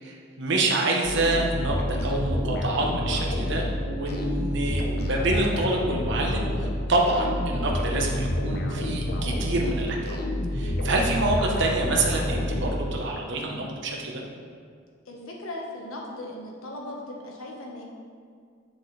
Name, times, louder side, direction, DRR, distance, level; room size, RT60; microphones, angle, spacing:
voice 1, 0.0-10.2 10.5-14.2, right 2 dB, 60° right, 0 dB, 1.0 m, -27 dB
sound 1, 1.0-13.2, left 1 dB, 50° left, 0.7 m, -28 dB
voice 2, 15.1-17.8, left 1 dB, 85° left, -1 dB, 1.4 m, -38 dB
7.8 x 6.5 x 3.3 m, 2.2 s
head